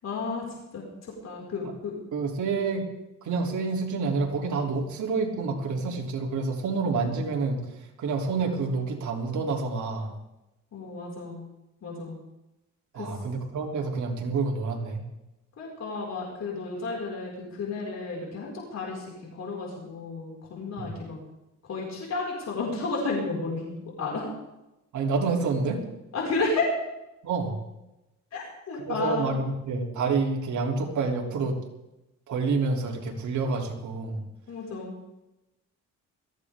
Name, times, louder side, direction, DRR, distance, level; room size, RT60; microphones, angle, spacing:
voice 1, 0.0-2.0 10.7-11.4 11.8-12.2 12.9-13.1 15.6-21.2 21.6-24.3 26.1-26.7 28.3-29.3 34.5-34.9, left 3 dB, 55° left, -3 dB, 5.5 m, -32 dB
voice 2, 2.1-2.9 3.2-7.6 8.0-10.1 12.9-15.0 20.8-20.9 24.9-25.8 27.2-27.6 28.9-31.6 32.3-34.2, right 4 dB, 70° right, 0 dB, 3.3 m, -28 dB
21.5 x 15.0 x 3.7 m, 0.94 s
cardioid pair, 105°, 31 cm